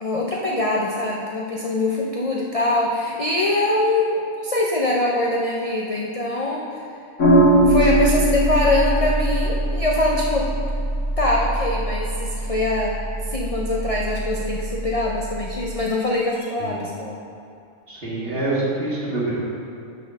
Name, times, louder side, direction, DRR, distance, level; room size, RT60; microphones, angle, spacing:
voice 1, 0.0-6.8 7.7-10.5 11.2-13.0 13.3-17.2, left 2 dB, 40° left, -2 dB, 0.5 m, -23 dB
sound 1, 7.2-15.7, right 1 dB, 65° left, 1.6 m, -21 dB
voice 2, 17.9-19.4, right 2 dB, 45° right, -6 dB, 1.9 m, -26 dB
6.2 x 5.8 x 6.1 m, 2.5 s
omnidirectional pair, 1.4 m